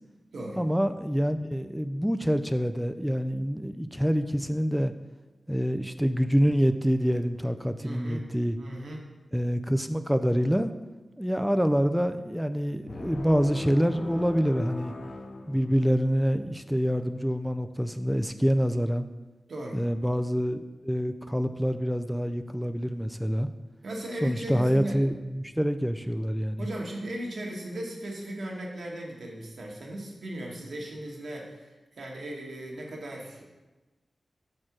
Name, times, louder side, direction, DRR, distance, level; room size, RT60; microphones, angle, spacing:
voice 1, 0.6-4.9 5.5-8.6 9.3-10.7 11.2-14.9 15.5-19.1 19.7-23.5 24.2-26.7, equal, ahead, 9 dB, 0.3 m, -26 dB
voice 2, 7.8-8.2 8.6-9.0 19.5-19.8 23.8-25.0 26.6-33.4, right 1 dB, 75° right, -1 dB, 1.4 m, -37 dB
sound 1, 12.9-16.2, left 2 dB, 65° left, 0.7 m, -39 dB
4.8 x 4.4 x 6.0 m, 1.1 s
cardioid pair, 55°, 0 cm